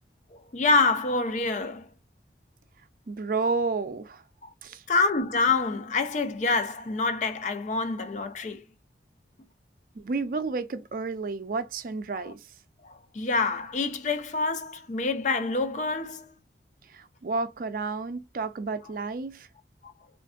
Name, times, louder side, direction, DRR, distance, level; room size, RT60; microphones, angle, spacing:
voice 1, 0.5-1.9 4.4-4.5 4.9-8.7 12.8-16.4 19.8-19.9, left 3 dB, 45° left, 0.4 m, -26 dB
voice 2, 3.1-4.2 4.6-4.8 10.0-12.4 16.9-19.5, right 4 dB, 50° right, 0.4 m, -31 dB
3.4 x 2.5 x 2.3 m
head